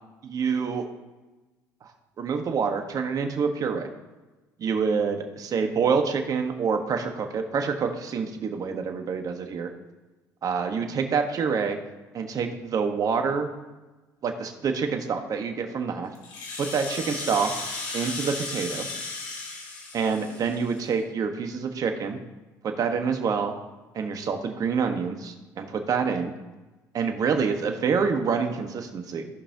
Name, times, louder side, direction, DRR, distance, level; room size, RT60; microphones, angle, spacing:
voice 1, 0.2-0.9 1.8-1.9 2.2-3.9 4.6-9.7 10.4-11.8 12.1-13.5 14.2-16.1 16.6-17.5 17.9-18.9 19.9-22.2 22.6-23.5 23.9-26.3 26.9-29.3, right 5 dB, 50° right, 5 dB, 1.3 m, -27 dB
Rattle (instrument), 16.1-20.9, left 3 dB, 70° left, 2.1 m, -35 dB
16.0 x 5.5 x 2.9 m, 1.2 s
hypercardioid pair, 70°, 8 cm